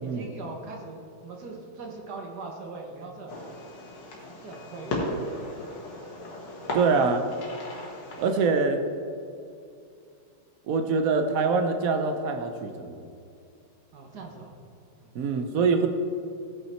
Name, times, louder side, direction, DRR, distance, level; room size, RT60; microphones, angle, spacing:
voice 1, 0.0-3.7 4.4-5.4 13.9-14.5 15.0-15.1, right 3 dB, 55° right, 1 dB, 1.6 m, -41 dB
Fireworks, 3.3-8.5, left 1 dB, 80° left, 2.3 m, -36 dB
voice 2, 6.7-7.3 8.2-8.8 10.7-13.1 15.1-15.9, right 4 dB, 75° right, 7 dB, 0.8 m, -24 dB
15.0 x 5.7 x 4.3 m, 2.5 s
omnidirectional pair, 2.2 m